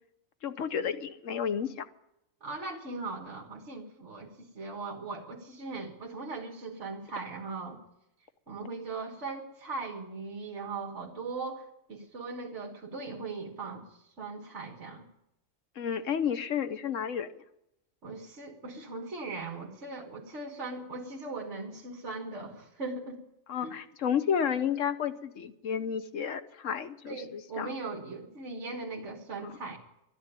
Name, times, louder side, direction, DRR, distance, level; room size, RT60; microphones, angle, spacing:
voice 1, 0.4-1.9 15.8-17.3 23.5-27.7 29.4-29.5, left 8 dB, 65° left, 11 dB, 1.2 m, -31 dB
voice 2, 2.4-7.8 8.5-13.8 14.2-15.0 18.0-23.2 23.6-23.8 27.1-29.8, right 3 dB, 55° right, 1 dB, 1.8 m, -39 dB
12.0 x 10.5 x 10.0 m, 0.85 s
omnidirectional pair, 1.4 m